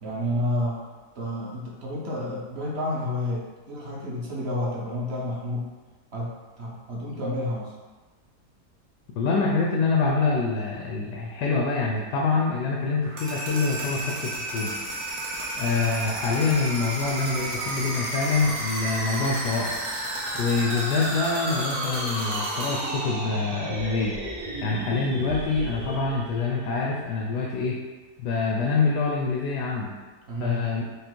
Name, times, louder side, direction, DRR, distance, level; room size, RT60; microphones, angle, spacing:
voice 1, 0.0-0.8 1.2-5.7 6.1-7.7 30.3-30.6, left 1 dB, 50° right, -4 dB, 0.9 m, -30 dB
voice 2, 9.2-14.7 15.6-19.7 20.3-24.2 24.6-27.8 28.2-29.9 30.4-30.8, left 4 dB, 90° left, -1 dB, 1.2 m, -25 dB
sound 1, 13.0-26.9, right 1 dB, 70° right, 1.4 m, -32 dB
5.1 x 2.0 x 4.3 m, 1.3 s
omnidirectional pair, 1.7 m